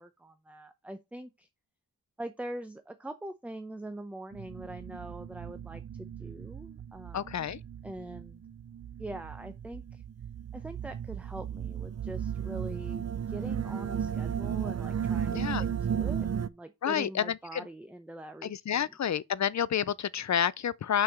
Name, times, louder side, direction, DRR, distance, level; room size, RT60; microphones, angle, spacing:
voice 1, 0.0-1.5 2.2-7.3 7.8-8.4 9.0-10.0 10.5-19.0, right 1 dB, 5° right, 0.6 m, -43 dB
sound 1, 4.3-16.5, right 8 dB, 45° right, 0.5 m, -35 dB
voice 2, 7.1-7.6 15.3-15.6 16.8-17.2 17.5-17.6 18.4-21.0, left 9 dB, 50° left, 0.5 m, -29 dB
5.7 x 4.7 x 6.3 m
wide cardioid pair, 105°, 38 cm